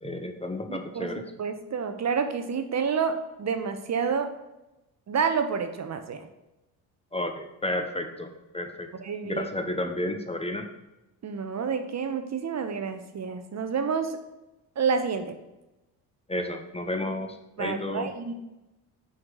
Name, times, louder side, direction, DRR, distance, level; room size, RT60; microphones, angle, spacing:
voice 1, 0.0-1.2 7.1-8.9 9.2-10.7 16.3-18.1, left 1 dB, 15° left, 6 dB, 0.8 m, -32 dB
voice 2, 0.7-1.1 1.4-4.3 5.1-6.3 9.0-9.5 11.2-14.2 14.8-15.3 17.6-18.3, right 6 dB, 40° right, 8 dB, 0.9 m, -29 dB
6.3 x 3.7 x 6.2 m, 0.97 s
supercardioid pair, 70°, 42 cm